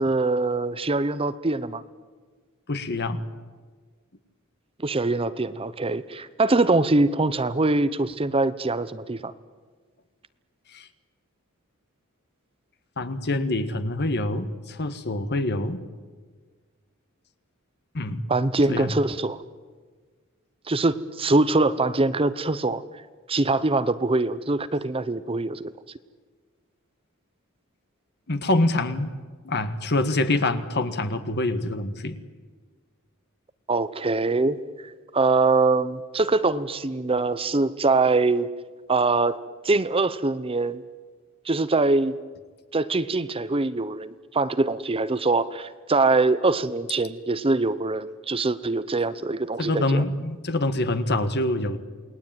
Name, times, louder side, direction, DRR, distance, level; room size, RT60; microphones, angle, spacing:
voice 1, 0.0-1.8 4.8-9.3 18.3-19.4 20.7-22.8 23.3-25.6 33.7-34.6 35.1-38.5 38.9-39.4 39.6-40.8 41.5-42.2 42.7-50.0, right 3 dB, 25° right, 14 dB, 0.7 m, -23 dB
voice 2, 2.7-3.2 10.7-10.9 13.0-15.8 17.9-18.2 18.7-18.9 28.3-29.1 29.4-32.2 49.6-51.8, left 2 dB, 50° left, 10 dB, 1.6 m, -25 dB
28.5 x 19.5 x 9.1 m, 1.5 s
head